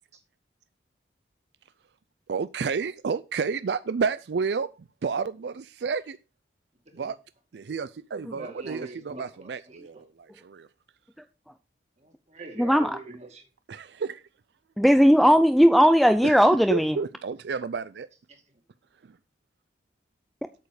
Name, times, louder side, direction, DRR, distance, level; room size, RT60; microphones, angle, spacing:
voice 1, 2.3-6.2 6.9-7.2 7.5-10.0 10.4-10.7 13.7-14.2 16.2-16.3 16.7-18.1, right 5 dB, 75° right, 0.4 m, -30 dB
voice 2, 8.4-9.8 12.0-13.4 18.3-18.4, right 2 dB, 35° right, 2.3 m, -42 dB
voice 3, 12.6-13.0 14.8-17.0, equal, ahead, 0.4 m, -18 dB
8.5 x 6.9 x 4.8 m
head